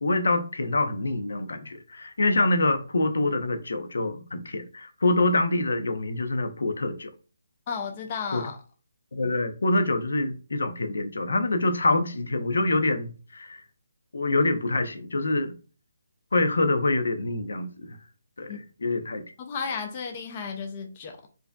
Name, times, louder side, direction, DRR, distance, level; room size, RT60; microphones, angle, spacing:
voice 1, 0.0-7.1 8.3-8.4 9.1-13.6 14.1-15.5 16.3-18.0 18.4-19.2, left 2 dB, 75° left, 0.6 m, -25 dB
voice 2, 7.7-8.6 18.5-18.6 19.4-21.3, left 5 dB, 20° left, 0.3 m, -33 dB
4.6 x 2.6 x 2.2 m
hypercardioid pair, 175°, 0 cm